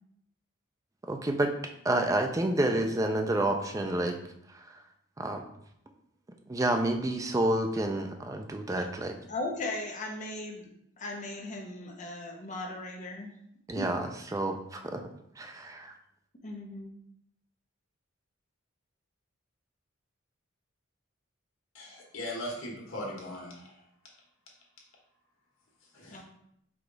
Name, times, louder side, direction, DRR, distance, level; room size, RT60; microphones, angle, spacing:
voice 1, 1.1-1.5 1.8-4.2 4.5-4.6 5.2-5.5 6.5-9.2 13.7-14.1 14.3-15.0 15.4-15.9, right 1 dB, 15° right, 4 dB, 0.3 m, -29 dB
voice 2, 9.3-10.7 11.0-13.3 13.7-13.9 16.4-16.9 26.1-26.2, left 2 dB, 35° left, 1 dB, 0.7 m, -37 dB
voice 3, 21.7-23.8 25.8-26.2, left 1 dB, 85° left, -3 dB, 1.4 m, -39 dB
4.8 x 2.3 x 3.9 m, 0.75 s
head